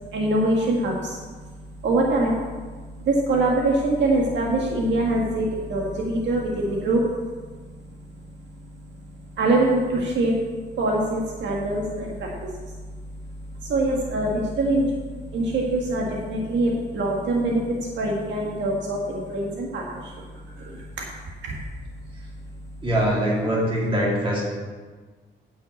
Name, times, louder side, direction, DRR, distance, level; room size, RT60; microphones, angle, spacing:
voice 1, 0.1-1.2 1.8-2.4 3.0-7.0 9.4-10.4 10.8-12.7 13.6-21.1 21.4-21.6, right 2 dB, 70° right, -2 dB, 1.8 m, -24 dB
voice 2, 22.8-24.4, equal, 25° right, -5 dB, 3.3 m, -22 dB
10.0 x 5.8 x 8.2 m, 1.4 s
wide cardioid pair, 175°, 19 cm